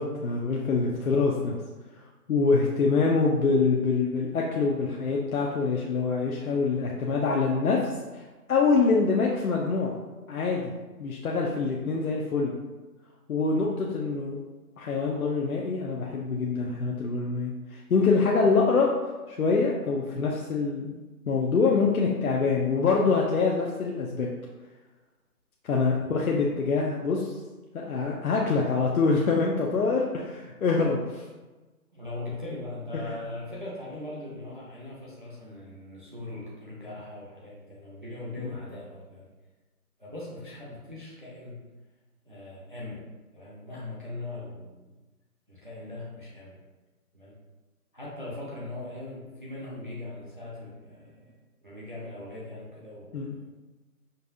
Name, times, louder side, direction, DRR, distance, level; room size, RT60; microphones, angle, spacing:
voice 1, 0.0-1.6 2.3-8.2 8.5-9.9 10.3-10.6 11.0-12.5 13.3-14.4 14.8-24.3 25.7-27.4 27.7-31.2 33.1-33.2 38.4-38.5 53.1-53.4, left 4 dB, 70° left, -2 dB, 0.6 m, -25 dB
voice 2, 31.9-39.3 40.0-41.6 42.3-43.0 43.3-44.8 45.5-46.6 47.1-47.3 47.9-51.3 51.6-53.5, left 2 dB, 35° right, -6 dB, 0.6 m, -40 dB
5.2 x 2.3 x 2.6 m, 1.2 s
hypercardioid pair, 180°, 45 cm